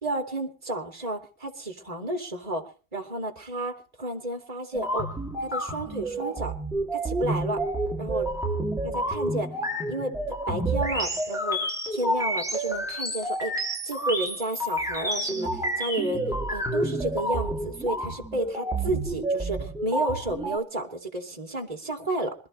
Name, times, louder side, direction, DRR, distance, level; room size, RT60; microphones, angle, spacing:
voice 1, 0.0-2.6 2.9-5.1 5.4-6.5 6.9-7.6 8.0-8.3 8.8-9.6 9.9-10.1 10.5-22.3, right 2 dB, 20° right, 4 dB, 2.7 m, -32 dB
sound 1, 4.7-20.6, right 1 dB, ahead, 2.8 m, -29 dB
26.5 x 13.0 x 3.2 m, 0.37 s
omnidirectional pair, 1.7 m